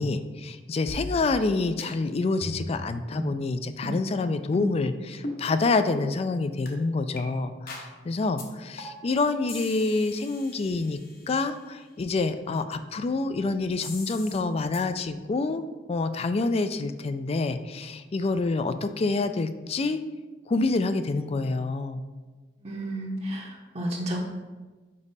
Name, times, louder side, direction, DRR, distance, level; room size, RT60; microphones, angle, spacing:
voice 1, 0.0-11.0 11.3-20.0 20.5-22.0, left 3 dB, 35° left, 10 dB, 0.3 m, -27 dB
sound 1, 0.9-1.5 1.8-1.9 2.4-2.8 3.1-3.3 3.8-4.0 4.5-4.8 5.2-5.4 5.9-6.1 6.7-6.8 7.2-7.3 7.7-7.9 8.4-8.5 8.8-9.1 9.5-11.3 13.8-14.4 14.7-14.8, left 1 dB, 55° left, 1.0 m, -37 dB
voice 2, 22.6-24.2, right 1 dB, 35° right, -1 dB, 0.8 m, -32 dB
5.3 x 4.9 x 4.1 m, 1.3 s
head